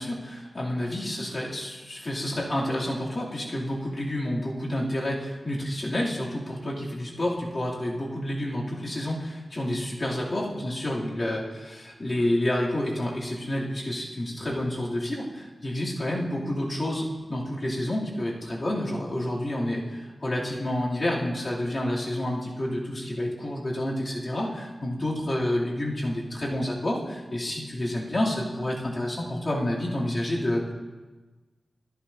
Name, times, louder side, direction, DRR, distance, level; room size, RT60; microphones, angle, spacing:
voice 1, 0.0-30.7, left 1 dB, 35° left, -6 dB, 2.7 m, -29 dB
14.0 x 11.5 x 2.7 m, 1.3 s
wide cardioid pair, 120°, 0 cm